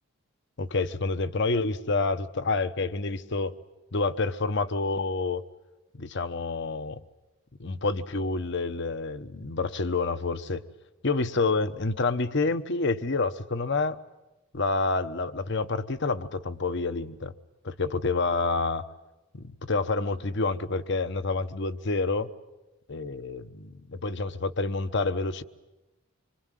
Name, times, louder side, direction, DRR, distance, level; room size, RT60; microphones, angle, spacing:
voice 1, 0.6-3.5 3.9-5.4 6.0-7.0 7.6-10.6 11.0-14.0 14.5-17.3 17.6-18.8 19.3-22.3 22.9-25.4, left 3 dB, 55° left, 11 dB, 1.1 m, -28 dB
26.0 x 25.0 x 9.2 m, 1.0 s
head